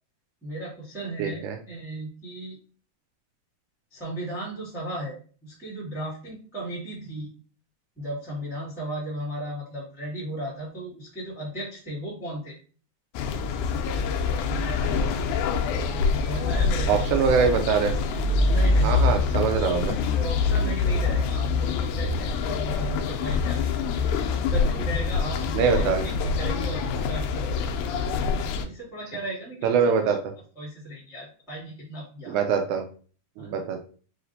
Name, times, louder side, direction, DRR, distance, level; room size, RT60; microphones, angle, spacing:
voice 1, 0.4-2.6 3.9-5.2 5.4-7.3 7.9-12.5 16.2-17.2 18.4-19.5 20.0-23.6 24.3-28.0 28.6-30.1 30.5-32.4 33.4-33.6, right 1 dB, ahead, -6 dB, 0.9 m, -36 dB
voice 2, 1.2-1.6 16.9-17.9 18.8-20.0 25.5-26.1 29.6-30.2 32.3-32.9 33.4-33.8, right 6 dB, 80° right, 5 dB, 1.8 m, -23 dB
sound 1, 13.1-28.6, left 4 dB, 85° left, 1.7 m, -25 dB
4.9 x 3.0 x 2.6 m, 0.41 s
omnidirectional pair, 3.9 m